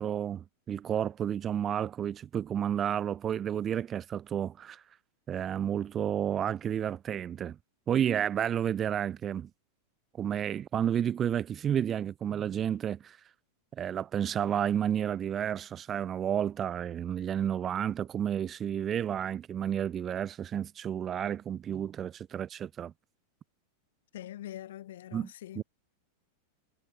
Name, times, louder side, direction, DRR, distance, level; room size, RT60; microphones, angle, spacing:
voice 1, 0.0-4.8 5.3-7.6 7.9-9.5 10.1-13.2 13.8-22.9 25.1-25.3 25.6-25.7, right 9 dB, 25° right, 0.3 m, -31 dB
voice 2, 24.1-25.6, left 13 dB, 60° left, 0.7 m, -43 dB
figure-of-eight pair, 90°, 0 cm